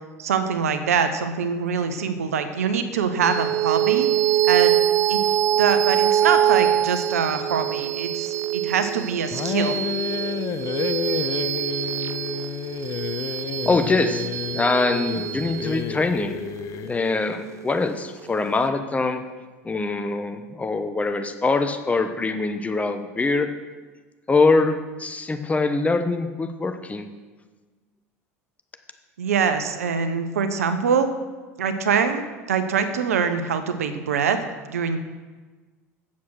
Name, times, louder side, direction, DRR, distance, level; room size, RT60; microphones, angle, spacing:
voice 1, 0.2-4.1 4.4-4.7 5.1-5.2 5.6-9.7 29.2-31.1 31.6-34.4 34.7-35.0, right 6 dB, 80° right, 9 dB, 0.8 m, -24 dB
sound 1, 3.2-18.0, right 11 dB, 40° right, 0.3 m, -24 dB
sound 2, 9.3-17.0, left 11 dB, 45° left, 0.5 m, -30 dB
voice 2, 13.6-14.2 14.5-16.4 16.9-19.2 19.6-23.5 24.3-27.1, left 3 dB, 20° left, 7 dB, 0.9 m, -23 dB
8.5 x 7.3 x 6.2 m, 1.3 s
hypercardioid pair, 75°, 8 cm